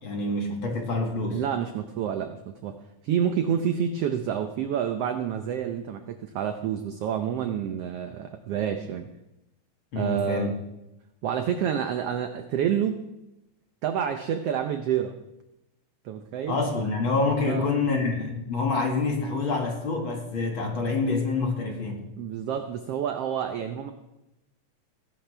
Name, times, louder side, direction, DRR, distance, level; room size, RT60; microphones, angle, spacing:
voice 1, 0.0-1.4 9.9-10.5 16.5-22.0, left 3 dB, 45° left, 1 dB, 2.4 m, -27 dB
voice 2, 1.3-2.7 3.0-9.1 9.9-10.5 11.2-13.0 13.8-15.1 16.0-16.6 17.5-17.6 22.2-23.9, right 8 dB, 75° right, 7 dB, 1.4 m, -28 dB
19.5 x 11.0 x 3.4 m, 0.93 s
omnidirectional pair, 3.6 m